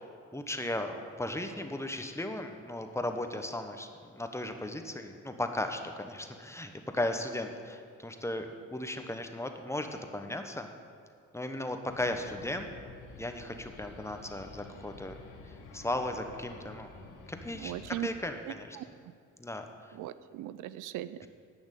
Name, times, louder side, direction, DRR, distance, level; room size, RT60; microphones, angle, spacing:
voice 1, 0.3-10.7 11.3-12.7 13.2-15.2 15.7-16.9 17.3-18.8 19.4-19.7, left 1 dB, 10° left, 6 dB, 1.1 m, -36 dB
sound 1, 11.9-18.1, left 3 dB, 80° left, 1.8 m, -50 dB
voice 2, 17.6-18.1 18.8-18.9 20.0-21.3, right 14 dB, 85° right, 14 dB, 0.5 m, -38 dB
10.5 x 6.2 x 9.0 m, 2.2 s
cardioid pair, 90°, 30 cm